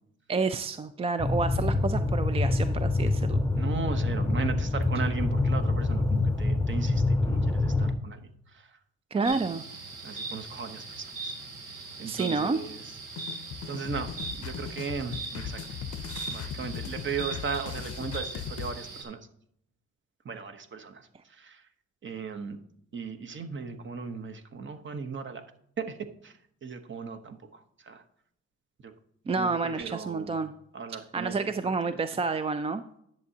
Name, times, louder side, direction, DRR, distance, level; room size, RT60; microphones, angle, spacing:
voice 1, 0.3-3.4 9.1-9.6 12.1-12.6 29.3-30.5 30.9-32.8, right 4 dB, 20° right, 11 dB, 0.3 m, -29 dB
sound 1, 1.2-7.9, left 2 dB, 10° left, 0.8 m, -26 dB
voice 2, 3.5-8.8 9.2-9.4 10.0-11.3 12.0-12.8 13.7-15.6 16.3-19.3 20.2-21.6 22.0-22.6 22.9-25.5 25.8-28.0 28.8-28.9 29.4-30.4 30.7-32.0, right 5 dB, 40° right, 8 dB, 1.0 m, -37 dB
sound 2, 9.2-19.0, right 3 dB, 90° right, 1.9 m, -40 dB
sound 3, 13.2-18.7, left 8 dB, 55° left, 0.6 m, -38 dB
10.5 x 7.2 x 2.8 m, 0.72 s
cardioid pair, 90°, 30 cm